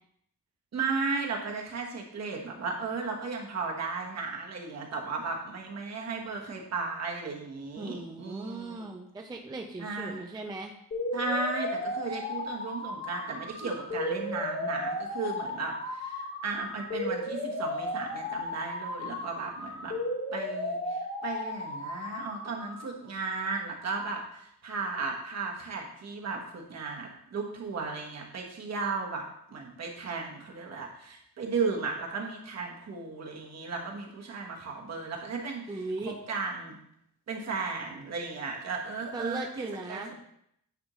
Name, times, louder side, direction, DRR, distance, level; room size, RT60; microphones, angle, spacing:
voice 1, 0.7-8.9 9.8-10.2 11.1-19.9 20.3-29.2 29.5-36.7 37.3-40.0, right 4 dB, 45° right, 1 dB, 1.3 m, -35 dB
voice 2, 7.8-10.7 35.7-36.1 39.1-40.2, right 2 dB, 10° right, 2 dB, 0.4 m, -38 dB
sound 1, 10.9-22.9, left 1 dB, 35° left, 1.2 m, -35 dB
9.5 x 5.2 x 3.1 m, 0.73 s
wide cardioid pair, 170°, 36 cm